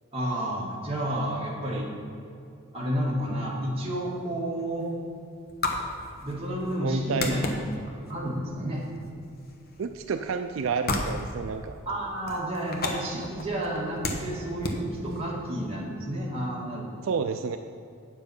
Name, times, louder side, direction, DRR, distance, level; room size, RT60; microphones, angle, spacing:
voice 1, 0.1-1.9 2.7-4.9 6.2-7.8 8.1-8.8 11.9-17.0, right 1 dB, 30° right, -4 dB, 1.9 m, -31 dB
sound 1, 3.9-15.7, left 2 dB, 50° left, 1.0 m, -36 dB
voice 2, 6.8-7.4 9.8-11.7 17.0-17.6, right 5 dB, 75° right, 7 dB, 0.4 m, -30 dB
8.8 x 7.3 x 5.4 m, 2.5 s
head